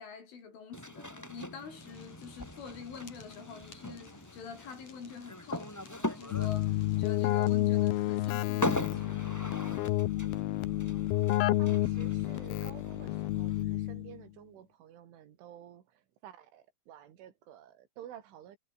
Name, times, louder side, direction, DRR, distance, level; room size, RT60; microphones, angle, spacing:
voice 1, 0.0-9.5, left 6 dB, 90° left, 8.7 m, -46 dB
sound 1, 0.7-13.6, left 1 dB, 15° left, 0.5 m, -41 dB
Fire, 1.7-8.4, left 6 dB, 40° left, 4.4 m, -57 dB
Keyboard (musical), 6.3-14.2, left 15 dB, 70° left, 2.6 m, -30 dB
voice 2, 11.6-18.6, right 10 dB, 80° right, 5.0 m, -51 dB
omnidirectional pair, 5.4 m